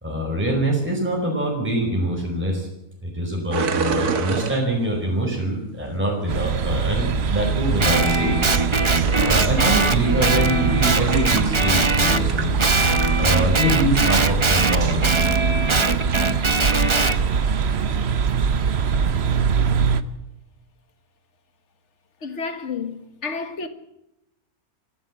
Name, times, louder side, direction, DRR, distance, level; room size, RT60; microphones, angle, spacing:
voice 1, 0.0-2.7 3.0-8.4 8.7-15.2, right 1 dB, 5° right, 5.0 m, -24 dB
sound 1, 3.5-5.0 9.0-9.5 10.6-12.0 12.3-13.7 15.0-15.2 15.9-16.8 17.2-17.3 17.5-17.6 18.2-18.5, right 5 dB, 85° right, 2.0 m, -28 dB
sound 2, 6.3-20.0, right 6 dB, 50° right, 1.1 m, -22 dB
Guitar, 7.8-12.3 12.6-17.2, right 3 dB, 25° right, 0.8 m, -22 dB
voice 2, 22.2-23.7, left 5 dB, 50° left, 1.8 m, -30 dB
25.0 x 15.5 x 7.6 m
omnidirectional pair, 1.6 m